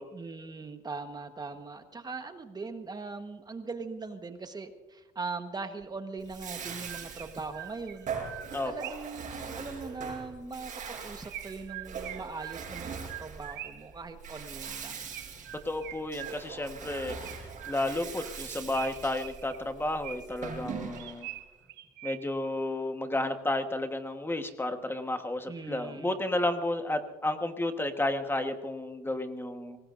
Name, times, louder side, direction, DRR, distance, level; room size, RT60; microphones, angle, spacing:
voice 1, 0.1-8.1 8.6-15.1 25.5-26.1, right 4 dB, 25° right, 7 dB, 1.3 m, -40 dB
Chirp tweet, 5.8-5.9 6.6-9.2 11.3-14.0 15.1-16.7 17.2-18.1 18.7-20.5 21.0-22.5, right 13 dB, 75° right, 1.4 m, -44 dB
Bathtub (filling or washing), 6.2-21.3, right 6 dB, 45° right, 5.8 m, -41 dB
voice 2, 15.6-17.1 17.7-21.3 22.0-29.8, left 1 dB, 15° left, 6 dB, 1.3 m, -32 dB
24.5 x 19.0 x 2.6 m, 1.2 s
cardioid pair, 110°, 17 cm